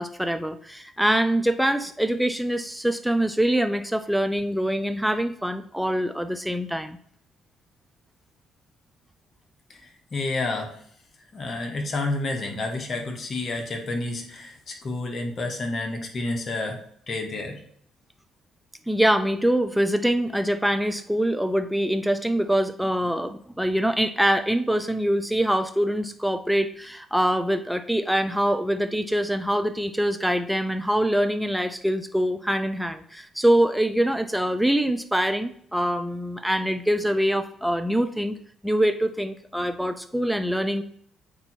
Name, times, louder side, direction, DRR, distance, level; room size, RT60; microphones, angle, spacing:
voice 1, 0.0-7.0 18.9-38.4 38.6-40.8, right 1 dB, ahead, 8 dB, 0.5 m, -24 dB
voice 2, 9.7-10.7 11.3-17.6, left 2 dB, 45° left, 3 dB, 1.5 m, -30 dB
8.5 x 3.0 x 4.3 m, 0.64 s
hypercardioid pair, 55°, 0 cm